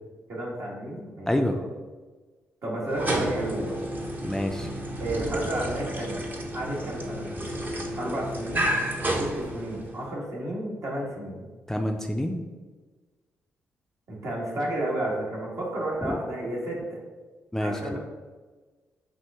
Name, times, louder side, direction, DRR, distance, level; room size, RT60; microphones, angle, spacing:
voice 1, 0.3-1.7 2.6-3.8 5.0-6.2 6.5-7.3 8.0-8.7 9.1-11.5 14.1-17.0 17.6-18.0, right 1 dB, 60° right, -3 dB, 1.5 m, -32 dB
voice 2, 1.3-1.6 4.2-4.7 11.7-12.4 16.0-16.2 17.5-18.0, left 1 dB, 5° left, 3 dB, 0.5 m, -27 dB
sound 1, 2.8-10.1, right 1 dB, 30° right, 0.8 m, -31 dB
5.8 x 2.6 x 3.5 m, 1.3 s
hypercardioid pair, 45°, 6 cm